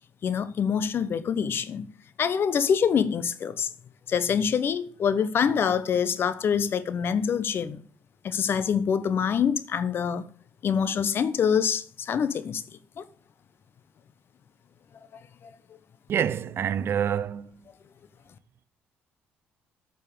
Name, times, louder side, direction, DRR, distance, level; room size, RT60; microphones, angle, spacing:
voice 1, 0.2-1.9 2.2-3.7 4.1-7.8 8.2-10.2 10.6-12.6 13.0-13.1, left 7 dB, 50° left, 1.0 m, -25 dB
voice 2, 16.1-17.6, right 8 dB, 55° right, 0.7 m, -27 dB
8.9 x 5.5 x 6.3 m
cardioid pair, 95°, 5 cm